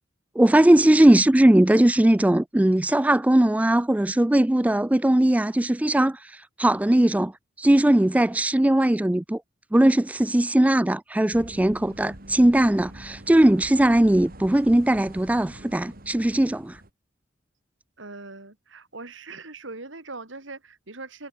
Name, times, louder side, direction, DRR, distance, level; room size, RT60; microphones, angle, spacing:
voice 1, 0.4-7.3 7.6-9.4 9.7-16.8, right 1 dB, 5° right, 0.3 m, -19 dB
sound 1, 11.3-16.9, right 1 dB, 50° right, 3.2 m, -44 dB
voice 2, 18.0-21.3, right 3 dB, 70° right, 3.0 m, -41 dB
head